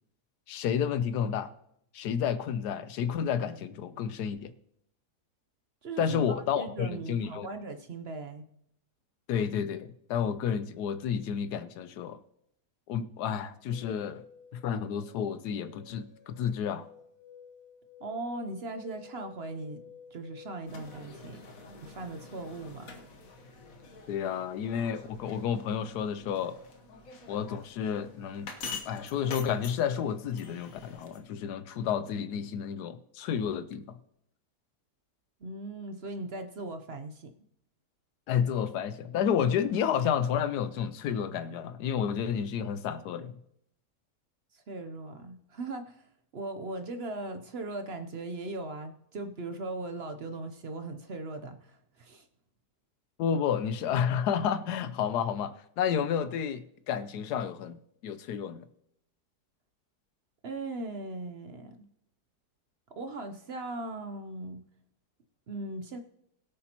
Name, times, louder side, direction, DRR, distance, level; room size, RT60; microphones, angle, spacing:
voice 1, 0.5-1.5 1.9-4.5 6.0-7.5 9.3-12.2 12.9-14.2 14.5-16.9 24.1-26.6 27.3-28.5 28.8-34.0 38.3-43.3 53.2-58.6, left 8 dB, 80° left, 1.2 m, -31 dB
voice 2, 5.8-8.4 18.0-19.9 20.1-23.0 35.4-37.3 44.5-46.1 46.3-52.3 60.4-61.9 63.0-64.7 65.5-66.0, right 2 dB, 55° right, 0.7 m, -39 dB
sound 1, 13.6-20.8, left 6 dB, 10° left, 2.2 m, -54 dB
sound 2, 20.7-31.2, left 4 dB, 60° left, 1.5 m, -46 dB
21.5 x 8.6 x 2.9 m
omnidirectional pair, 1.7 m